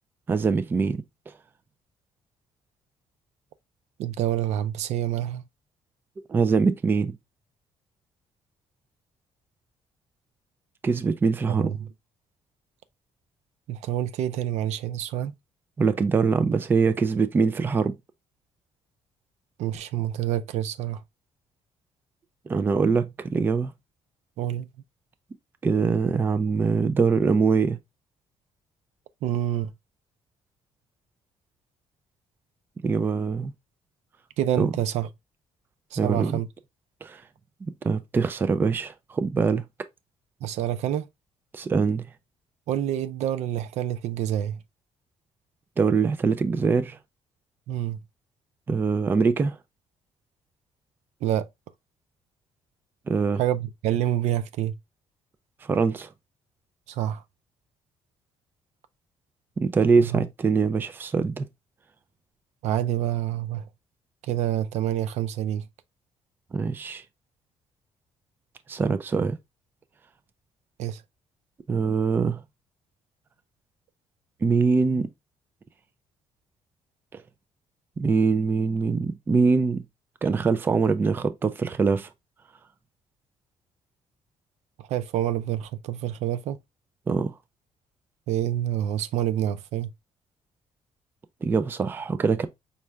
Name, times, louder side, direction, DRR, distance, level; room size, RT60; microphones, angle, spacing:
voice 1, 0.3-1.3 6.3-7.2 10.8-11.7 15.8-18.0 22.5-23.7 25.6-27.8 32.8-33.5 34.6-34.7 36.0-36.4 37.0-37.2 37.6-39.7 41.5-42.1 45.8-47.0 48.7-49.6 53.1-53.4 55.6-56.1 59.6-61.5 66.5-67.0 68.7-69.4 71.7-72.4 74.4-75.1 77.1-77.2 78.0-79.8 80.2-82.1 87.1-87.3 91.4-92.5, right 5 dB, 20° right, 0.3 m, -23 dB
voice 2, 4.0-5.4 11.5-11.9 13.7-15.3 19.6-21.0 24.4-24.7 29.2-29.7 34.4-35.1 35.9-36.5 40.4-41.1 42.7-44.6 47.7-48.0 51.2-51.5 53.4-54.8 56.9-57.2 60.0-60.2 62.6-63.7 64.2-65.7 70.8-71.0 84.8-86.6 88.3-89.9, right 11 dB, 85° right, 0.5 m, -27 dB
5.3 x 2.4 x 3.1 m
cardioid pair, 170°, 11 cm